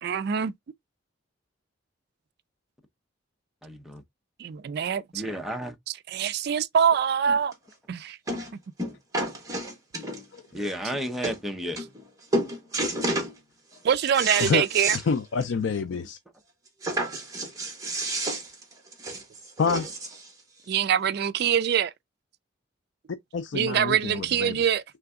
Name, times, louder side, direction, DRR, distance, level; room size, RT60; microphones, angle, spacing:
voice 1, 0.0-0.5 4.4-5.0 5.9-7.5 7.9-8.2 13.8-15.0 20.7-21.9 23.5-24.8, right 8 dB, 55° right, 0.3 m, -24 dB
voice 2, 3.6-4.0 5.1-5.7 10.5-11.8, equal, ahead, 0.6 m, -32 dB
sound 1, 7.5-7.6 8.3-8.5 8.8-10.4 10.9-11.0 11.2-11.4 11.8-12.1 12.3-13.3 13.7-15.0 15.4-15.5 15.8-15.9 16.8-20.3 21.1-21.2, right 1 dB, 20° right, 1.3 m, -30 dB
voice 3, 14.3-14.7 14.9-16.2 19.6-19.9 23.3-24.6, left 5 dB, 65° left, 0.4 m, -27 dB
3.8 x 3.4 x 3.5 m
head